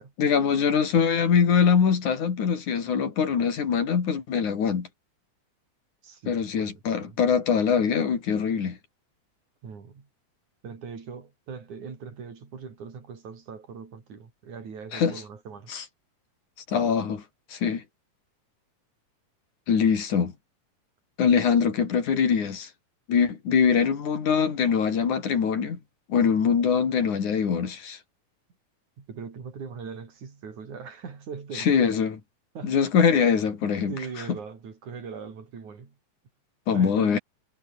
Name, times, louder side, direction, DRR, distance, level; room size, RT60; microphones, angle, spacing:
voice 1, 0.0-4.9 6.3-8.8 14.9-15.2 15.7-15.8 16.7-17.2 17.5-17.8 19.7-20.3 21.2-22.7 23.1-25.8 26.1-28.0 31.5-32.2 32.6-33.9 36.7-37.2, left 6 dB, 85° left, 4.7 m, -23 dB
voice 2, 6.0-7.2 9.6-10.1 10.6-15.7 26.7-26.8 29.0-31.9 32.6-32.8 33.9-36.0 36.7-37.2, right 6 dB, 80° right, 5.5 m, -40 dB
omnidirectional pair, 3.4 m